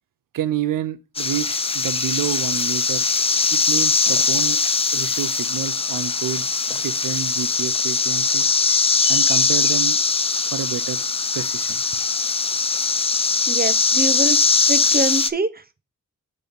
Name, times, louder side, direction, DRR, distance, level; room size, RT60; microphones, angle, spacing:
voice 1, 0.3-3.1 3.5-4.6 4.9-6.5 6.7-8.5 9.1-10.0 10.4-11.0 11.3-11.8, right 10 dB, 75° right, 0.5 m, -28 dB
sound 1, 1.2-15.3, left 4 dB, 20° left, 0.3 m, -21 dB
voice 2, 13.5-14.4 14.7-15.8, right 2 dB, 30° right, 0.7 m, -24 dB
6.7 x 3.2 x 5.1 m
cardioid pair, 50°, 33 cm